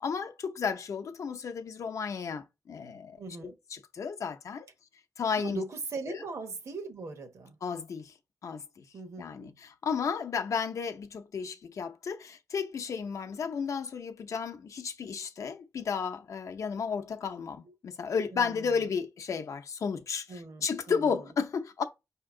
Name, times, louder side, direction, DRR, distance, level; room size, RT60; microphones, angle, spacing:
voice 1, 0.0-4.7 5.2-5.6 6.1-6.2 7.6-8.1 8.4-8.8 9.2-21.8, left 6 dB, 70° left, 0.6 m, -33 dB
voice 2, 3.2-3.5 5.3-7.6 8.9-9.5 17.6-17.7 18.3-18.9 20.3-21.3, right 3 dB, 60° right, 1.0 m, -40 dB
5.1 x 2.8 x 3.6 m
wide cardioid pair, 170°, 6 cm